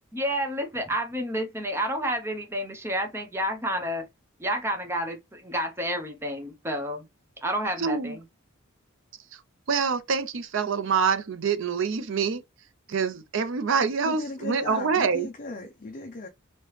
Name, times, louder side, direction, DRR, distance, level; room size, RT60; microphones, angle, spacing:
voice 1, 0.1-4.1 4.4-7.0 7.4-8.2, equal, 10° right, 0.6 m, -30 dB
voice 2, 7.8-8.2 9.7-12.4 12.9-15.3, right 5 dB, 60° right, 0.5 m, -26 dB
voice 3, 14.0-16.3, left 2 dB, 40° left, 0.5 m, -37 dB
3.1 x 2.9 x 3.1 m
head